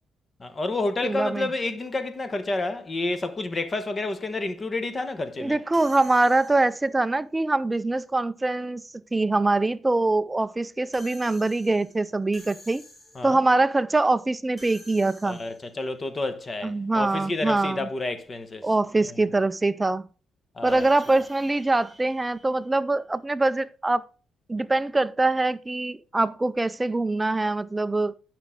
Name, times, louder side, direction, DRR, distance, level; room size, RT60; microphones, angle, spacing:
voice 1, 0.4-5.6 13.1-13.4 15.2-18.7 19.0-19.2 20.5-20.9, left 2 dB, 30° left, 0.9 m, -30 dB
voice 2, 1.0-1.5 5.4-8.8 9.1-12.8 13.2-15.4 16.6-17.9 18.6-20.1 20.6-24.0 24.5-28.1, right 2 dB, 15° right, 0.3 m, -23 dB
sound 1, 5.7-7.0 10.9-13.5 14.6-15.8 20.7-23.2, equal, 5° left, 3.1 m, -50 dB
10.5 x 5.9 x 3.7 m
cardioid pair, 90°, 0 cm